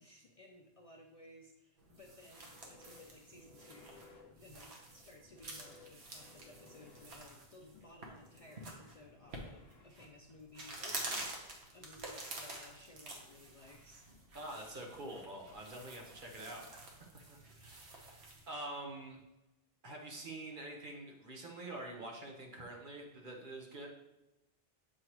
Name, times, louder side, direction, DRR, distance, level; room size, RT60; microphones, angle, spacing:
voice 1, 0.0-14.0, left 2 dB, 45° left, 1 dB, 0.5 m, -58 dB
sound 1, 1.8-12.8 14.1-14.3 15.2-15.3, left 3 dB, 75° left, 1.2 m, -63 dB
sound 2, 1.8-18.5, right 2 dB, 90° right, 1.4 m, -49 dB
voice 2, 14.3-19.2 19.8-23.9, right 1 dB, 55° right, 0 dB, 1.2 m, -46 dB
7.9 x 4.7 x 3.0 m, 0.95 s
omnidirectional pair, 1.1 m